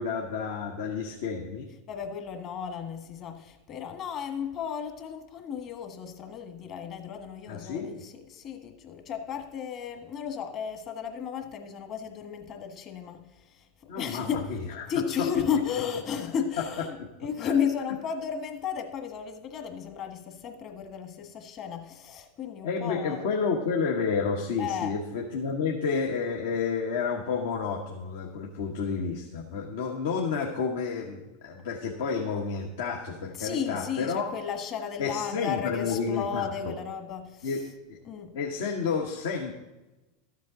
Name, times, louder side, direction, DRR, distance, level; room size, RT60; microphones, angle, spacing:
voice 1, 0.0-1.7 7.5-8.0 13.9-14.9 15.2-15.3 16.6-16.7 17.4-17.5 22.6-34.3 35.0-36.7 37.4-37.6 37.9-38.0 38.3-39.5, left 5 dB, 75° left, 1.2 m, -30 dB
voice 2, 1.9-13.6 14.0-14.5 14.9-23.3 24.6-25.0 33.4-37.6 38.0-38.3, left 7 dB, 45° left, 1.5 m, -34 dB
13.0 x 7.5 x 3.8 m
hypercardioid pair, 100°, 0 cm